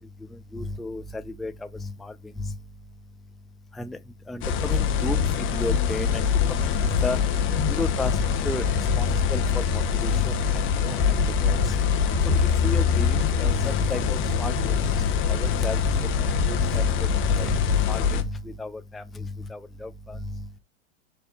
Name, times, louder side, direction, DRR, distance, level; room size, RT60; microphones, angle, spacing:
voice 1, 0.5-1.5 1.8-2.1 2.4-2.5 3.8-4.0 4.3-6.3 6.6-7.2 7.7-8.6 9.0-11.0 11.4-11.7 12.2-15.0 15.3-15.8 16.2-16.8 17.4-17.6 17.9-18.2 18.6-20.2, left 2 dB, ahead, 0.4 m, -33 dB
sound 1, 4.4-18.2, left 6 dB, 35° left, 1.3 m, -23 dB
6.3 x 4.4 x 5.4 m
hypercardioid pair, 120°, 37 cm